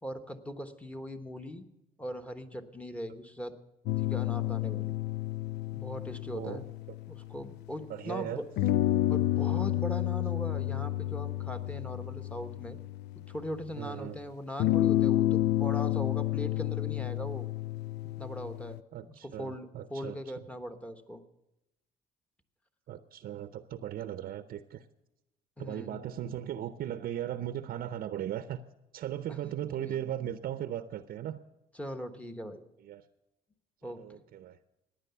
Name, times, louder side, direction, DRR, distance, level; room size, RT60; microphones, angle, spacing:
voice 1, 0.0-1.7 2.0-3.6 4.0-5.0 5.7-6.7 7.1-8.4 9.1-12.8 13.3-17.5 18.2-21.2 25.6-26.0 29.3-29.4 29.7-30.0 31.7-32.6 33.8-34.2, equal, 10° left, 7 dB, 1.1 m, -40 dB
sound 1, 3.9-7.8 8.6-13.6 14.6-18.8, left 14 dB, 85° left, 0.4 m, -30 dB
voice 2, 6.3-6.6 7.9-8.4 13.8-14.2 18.9-20.2 22.9-24.8 25.6-28.6 28.9-31.4 32.8-33.0 33.8-34.6, right 11 dB, 60° right, 11 dB, 0.7 m, -37 dB
15.0 x 10.0 x 6.9 m, 0.93 s
cardioid pair, 110°, 17 cm